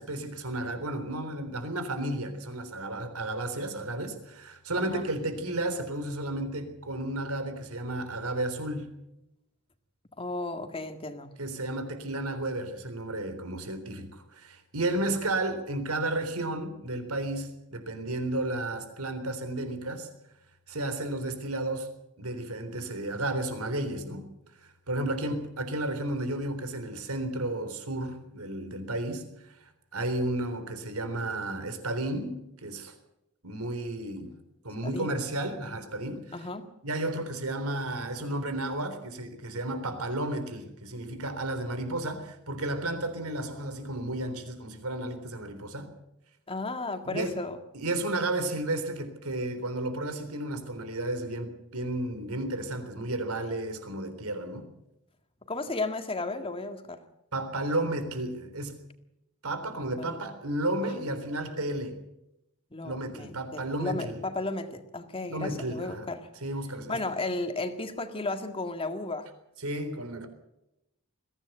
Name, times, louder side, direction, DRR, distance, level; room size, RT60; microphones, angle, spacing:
voice 1, 0.0-8.9 11.4-20.1 20.7-21.9 22.2-24.3 24.6-32.9 33.4-34.4 34.6-36.5 36.8-45.9 47.0-47.4 47.7-54.7 57.3-58.8 59.4-62.0 62.8-64.2 65.3-66.1 66.4-67.0 69.6-70.3, right 1 dB, 85° right, 9 dB, 3.7 m, -33 dB
voice 2, 10.2-11.3 34.9-35.2 36.3-36.7 46.5-47.6 55.5-57.0 60.0-60.2 62.7-66.3 66.9-69.3, left 2 dB, 25° left, 7 dB, 1.9 m, -34 dB
22.0 x 16.0 x 8.0 m, 0.88 s
head